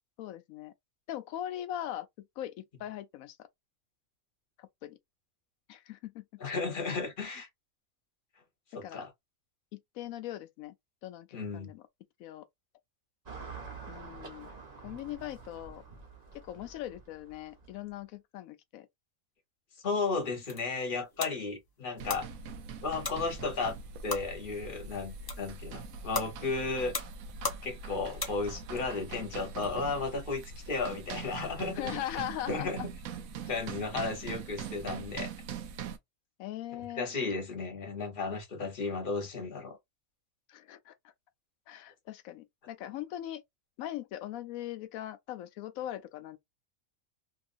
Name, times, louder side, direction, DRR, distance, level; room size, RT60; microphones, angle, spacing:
voice 1, 0.2-0.7 1.1-3.5 4.6-5.0 5.7-6.2 8.8-9.0 9.7-10.7 11.0-11.8 12.2-12.5 13.9-14.5 14.8-15.8 16.3-18.9 31.7-32.9 33.4-33.5 36.4-37.1 40.5-40.9 41.7-43.4 43.8-46.4, left 13 dB, 85° left, 1.0 m, -40 dB
voice 2, 6.4-7.5 8.7-9.1 11.3-11.7 19.8-22.3 22.8-23.7 24.0-26.9 27.6-31.9 32.5-32.8 33.5-35.3 37.0-39.8, left 4 dB, 40° left, 1.1 m, -34 dB
Car passing by / Traffic noise roadway noise, 13.3-17.9, right 4 dB, 35° right, 0.9 m, -47 dB
sound 1, 20.2-28.8, left 3 dB, 25° left, 0.5 m, -41 dB
sound 2, 22.0-36.0, right 5 dB, 85° right, 1.0 m, -42 dB
3.0 x 2.6 x 2.4 m
omnidirectional pair, 1.4 m